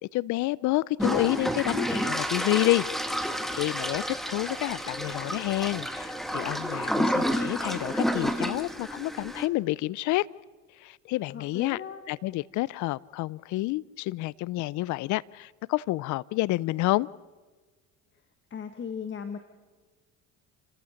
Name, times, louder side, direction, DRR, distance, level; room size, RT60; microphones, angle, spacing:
voice 1, 0.0-2.9 3.2-10.3 10.8-11.8 12.1-17.1, left 19 dB, 60° left, 0.6 m, -29 dB
sound 1, 1.0-9.5, equal, ahead, 1.8 m, -30 dB
voice 2, 11.3-12.0 18.5-19.4, left 6 dB, 35° left, 1.5 m, -37 dB
29.5 x 14.0 x 6.5 m
supercardioid pair, 90°, 33 cm